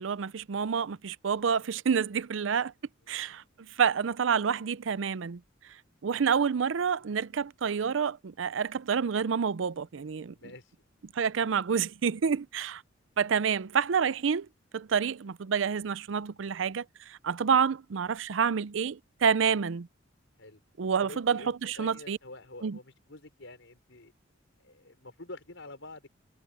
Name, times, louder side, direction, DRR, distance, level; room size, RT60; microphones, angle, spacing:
voice 1, 0.0-2.7 3.1-3.4 3.8-5.4 6.0-10.3 11.2-12.8 13.2-14.5 14.7-19.9 20.8-22.2 22.6-22.8, right 6 dB, 75° right, 0.5 m, -28 dB
voice 2, 10.3-10.6 20.4-20.6 21.0-24.1 24.6-26.1, left 2 dB, 75° left, 5.2 m, -47 dB
head